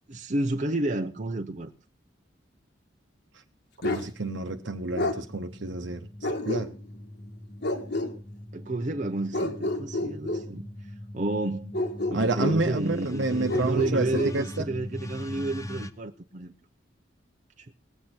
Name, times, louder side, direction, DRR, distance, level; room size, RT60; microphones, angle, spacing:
voice 1, 0.1-1.7 8.5-11.8 12.1-16.5 17.6-17.7, right 2 dB, 40° right, 0.7 m, -31 dB
Bark, 3.8-4.1 5.0-5.2 6.2-7.0 7.6-8.1 9.3-10.5 11.7-12.6 13.5-14.3, left 1 dB, 60° left, 1.7 m, -29 dB
voice 2, 3.8-6.7 12.1-14.7, right 2 dB, 70° right, 0.9 m, -29 dB
sound 1, 4.8-15.9, left 1 dB, 15° left, 0.7 m, -41 dB
20.0 x 8.0 x 4.3 m
head